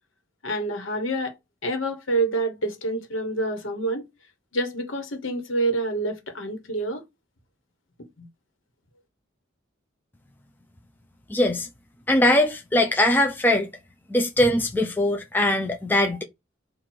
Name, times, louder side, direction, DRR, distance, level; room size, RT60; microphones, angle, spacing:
voice 1, 0.4-1.3 1.6-4.1 4.5-7.0, right 2 dB, 80° left, 1.3 m, -27 dB
voice 2, 11.3-11.7 12.1-13.7 14.1-16.2, left 1 dB, 10° left, 0.5 m, -21 dB
4.5 x 2.6 x 4.4 m
head